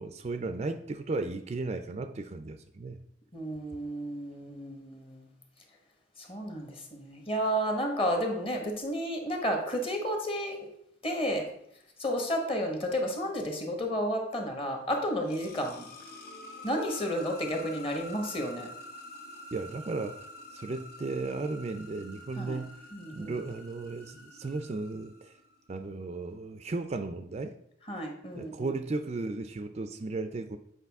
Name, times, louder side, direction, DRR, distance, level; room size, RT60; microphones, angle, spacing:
voice 1, 0.0-3.0 19.5-22.8 23.1-25.4 25.7-27.6 28.3-30.6, right 3 dB, 35° right, 9 dB, 0.4 m, -35 dB
voice 2, 3.3-5.3 6.2-10.7 11.0-11.5 12.0-15.9 16.6-18.7 22.4-22.6 22.9-23.3 27.9-28.7, equal, 30° left, 3 dB, 1.2 m, -32 dB
sound 1, 14.9-25.6, left 1 dB, 55° left, 1.2 m, -47 dB
8.2 x 4.8 x 3.5 m, 0.73 s
head